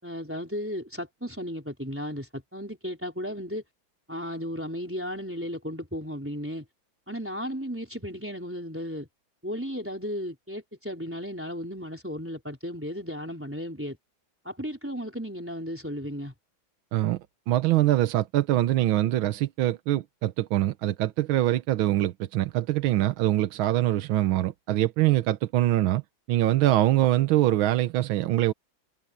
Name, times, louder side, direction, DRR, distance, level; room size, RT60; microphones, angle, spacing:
voice 1, 0.0-3.6 4.1-6.6 7.1-9.1 9.4-14.0 14.4-16.3, equal, 5° right, 3.9 m, -35 dB
voice 2, 17.5-26.0 26.3-28.5, right 14 dB, 85° right, 1.6 m, -24 dB
omnidirectional pair, 2.2 m